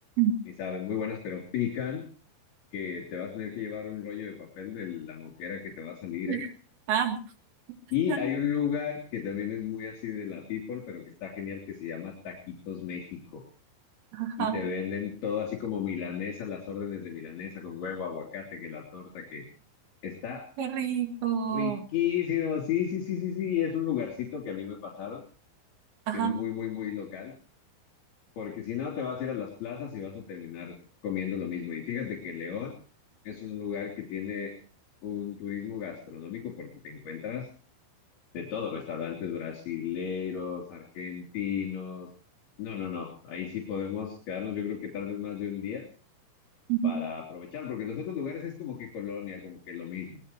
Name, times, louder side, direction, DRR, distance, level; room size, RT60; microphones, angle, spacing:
voice 1, 0.6-2.1 2.7-6.4 7.9-13.4 14.4-19.4 20.0-20.5 21.5-25.2 26.1-27.3 28.4-30.8 31.0-32.7 33.2-34.5 35.0-37.5 38.3-42.1 42.6-45.9 46.8-50.2, left 8 dB, 50° left, -2 dB, 5.0 m, -34 dB
voice 2, 6.9-7.2 8.1-8.2 14.1-14.6 20.6-21.8 26.1-26.4 46.7-47.0, right 8 dB, 60° right, 6 dB, 3.3 m, -28 dB
23.0 x 19.5 x 3.0 m, 0.38 s
omnidirectional pair, 6.0 m